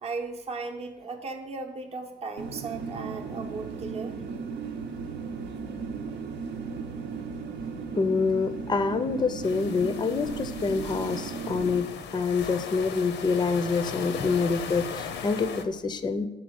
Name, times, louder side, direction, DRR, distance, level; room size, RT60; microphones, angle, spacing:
voice 1, 0.0-4.2, right 4 dB, 35° right, 3 dB, 0.7 m, -36 dB
sound 1, 2.4-11.8, right 5 dB, 80° right, 0.8 m, -36 dB
voice 2, 7.9-16.3, left 4 dB, 25° left, 11 dB, 0.4 m, -26 dB
sound 2, 9.4-15.6, left 7 dB, 90° left, 0.6 m, -38 dB
6.1 x 4.3 x 6.3 m, 0.99 s
cardioid pair, 120°, 18 cm